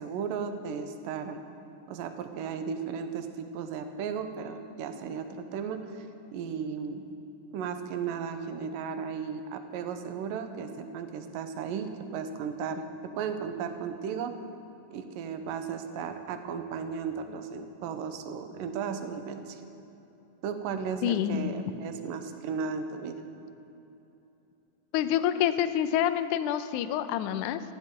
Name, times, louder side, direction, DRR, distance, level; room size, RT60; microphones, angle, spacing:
voice 1, 0.0-1.4 1.9-6.1 6.3-7.1 7.5-14.4 14.9-19.6 20.4-23.2, right 6 dB, 75° right, 8 dB, 2.4 m, -35 dB
voice 2, 21.0-21.7 24.9-27.6, left 10 dB, 80° left, 10 dB, 1.8 m, -27 dB
20.0 x 15.0 x 3.8 m, 3.0 s
omnidirectional pair, 4.0 m